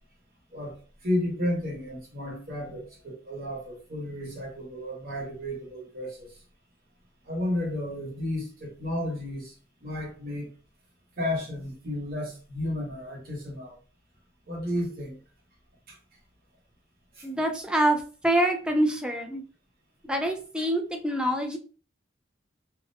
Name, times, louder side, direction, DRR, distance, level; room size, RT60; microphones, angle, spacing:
voice 1, 1.0-6.3 7.2-9.5 9.8-10.5 11.2-13.8 14.5-15.2 15.9-16.0 17.2-17.3, left 1 dB, 55° right, -1 dB, 1.1 m, -32 dB
voice 2, 17.2-19.4 20.1-21.6, right 1 dB, 5° right, 4 dB, 0.4 m, -26 dB
2.6 x 2.1 x 2.6 m, 0.37 s
head